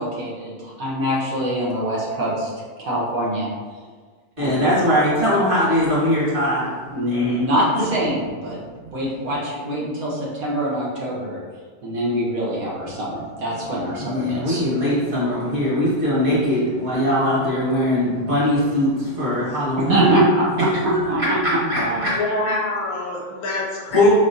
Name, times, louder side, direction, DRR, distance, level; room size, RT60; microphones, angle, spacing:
voice 1, 0.0-2.5 2.8-3.5 4.4-4.6 6.9-8.6 8.9-11.4 11.8-14.6 19.9-21.4 21.7-22.1 22.4-22.6, right 1 dB, 70° right, -5 dB, 1.5 m, -23 dB
voice 2, 4.4-7.4 8.5-8.9 14.0-20.1 20.9-21.3 21.7-22.2 23.9-24.1, left 1 dB, 35° right, -8 dB, 1.8 m, -21 dB
voice 3, 22.1-24.1, left 2 dB, 80° left, 0 dB, 1.3 m, -26 dB
4.7 x 4.1 x 2.6 m, 1.5 s
omnidirectional pair, 1.6 m